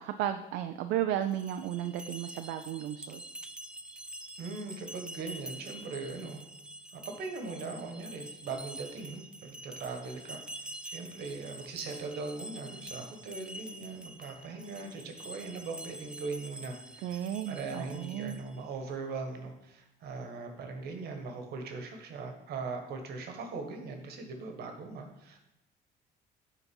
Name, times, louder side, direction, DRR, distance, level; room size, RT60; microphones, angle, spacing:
voice 1, 0.0-3.2 17.0-18.4, right 11 dB, 85° right, 8 dB, 0.4 m, -34 dB
sound 1, 1.2-18.7, right 1 dB, 5° right, 0.3 m, -47 dB
voice 2, 4.4-6.4 6.9-25.4, right 4 dB, 70° right, 5 dB, 1.3 m, -40 dB
7.2 x 3.9 x 5.3 m, 0.88 s
cardioid pair, 110°, 17 cm